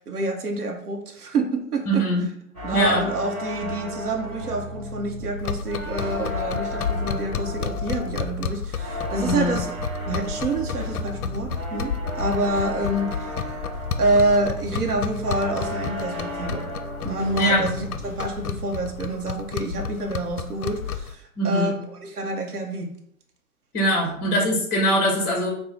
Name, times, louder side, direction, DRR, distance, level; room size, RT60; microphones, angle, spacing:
voice 1, 0.0-2.1 2.6-9.8 10.1-13.7 14.0-16.7 17.0-21.7 22.0-22.9 24.0-24.1, right 2 dB, 90° right, 1 dB, 1.0 m, -27 dB
voice 2, 1.9-2.2 2.7-3.0 9.2-9.5 17.4-17.7 21.4-21.7 23.7-25.5, equal, 20° left, 0 dB, 1.0 m, -22 dB
sound 1, 2.5-18.3 18.5-19.0, equal, 5° right, 0.5 m, -34 dB
sound 2, 5.4-21.2, left 7 dB, 75° left, 0.5 m, -32 dB
5.2 x 2.2 x 3.1 m, 0.71 s
hypercardioid pair, 140°, 44 cm